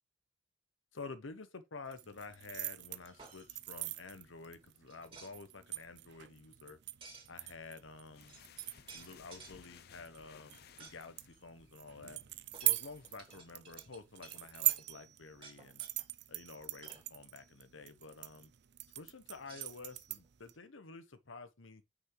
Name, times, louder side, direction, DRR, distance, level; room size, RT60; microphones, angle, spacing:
voice 1, 0.9-6.8 7.3-8.4 8.9-12.2 12.6-15.8 16.3-18.5 19.0-21.8, left 4 dB, 90° left, 1.0 m, -50 dB
sound 1, 1.9-20.5, right 18 dB, 60° right, 0.5 m, -42 dB
sound 2, 3.0-3.5 4.9-5.3 7.0-7.3 8.0-8.1 8.3-9.6 10.8-11.0 11.3-11.4 12.5-14.9 15.3-16.1 16.5-17.1 19.4-20.3, right 4 dB, 30° right, 2.5 m, -55 dB
sound 3, 8.1-13.4, left 8 dB, 55° left, 0.4 m, -61 dB
6.2 x 5.8 x 3.2 m
head